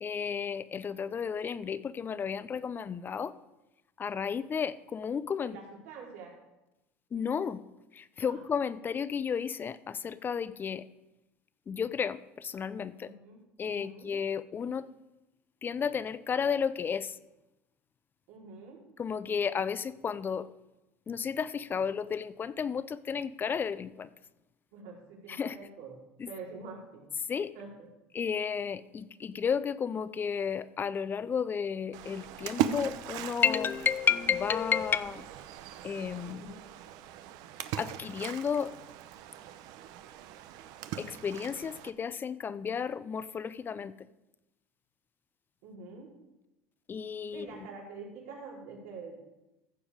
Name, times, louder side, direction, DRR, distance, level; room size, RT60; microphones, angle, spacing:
voice 1, 0.0-3.3 4.0-5.6 7.1-7.6 7.9-10.9 11.7-13.1 13.6-14.9 15.6-17.2 19.0-20.5 21.1-24.1 25.3-25.6 26.2-26.3 27.3-27.5 28.1-35.3 35.8-36.6 37.8-38.8 41.0-44.0 46.9-47.5, left 7 dB, 30° left, 16 dB, 0.5 m, -32 dB
voice 2, 5.4-6.3 8.2-8.4 13.0-13.4 13.7-14.1 18.3-18.8 24.7-26.0 26.3-27.0 27.5-27.9 36.3-36.6 45.6-46.1 47.3-49.2, right 4 dB, 80° right, -4 dB, 4.3 m, -46 dB
Splash splatter, 31.9-41.9, right 10 dB, 65° right, 0.8 m, -39 dB
14.5 x 7.1 x 5.0 m, 0.97 s
supercardioid pair, 100°, 7 cm